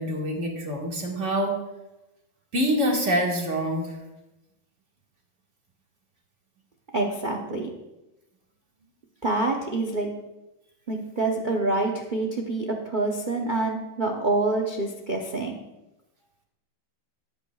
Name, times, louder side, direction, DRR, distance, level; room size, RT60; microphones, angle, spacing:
voice 1, 0.0-1.6 2.5-3.9, equal, 35° right, 0 dB, 1.9 m, -25 dB
voice 2, 6.9-7.7 9.2-10.1 10.9-15.6, right 2 dB, 75° right, 2 dB, 0.4 m, -26 dB
17.5 x 8.5 x 2.4 m, 0.98 s
omnidirectional pair, 2.3 m